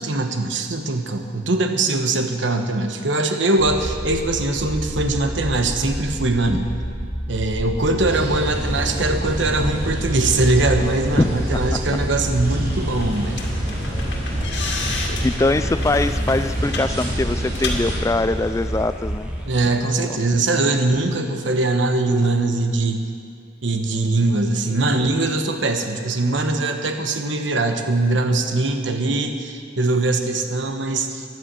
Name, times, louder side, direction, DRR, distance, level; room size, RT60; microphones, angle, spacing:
voice 1, 0.0-6.7 7.3-13.4 19.5-23.0 23.6-31.2, right 2 dB, 75° right, 6 dB, 1.2 m, -21 dB
sound 1, 3.6-19.5, right 1 dB, 5° right, 1.4 m, -30 dB
sound 2, 8.0-17.9, equal, 50° right, 4.2 m, -27 dB
voice 2, 11.1-11.6 15.2-19.3 20.1-20.2 20.6-20.7, left 2 dB, 15° left, 12 dB, 0.3 m, -22 dB
sound 3, 12.4-18.8, left 2 dB, 65° left, 2.3 m, -32 dB
14.0 x 11.0 x 7.6 m, 2.3 s
head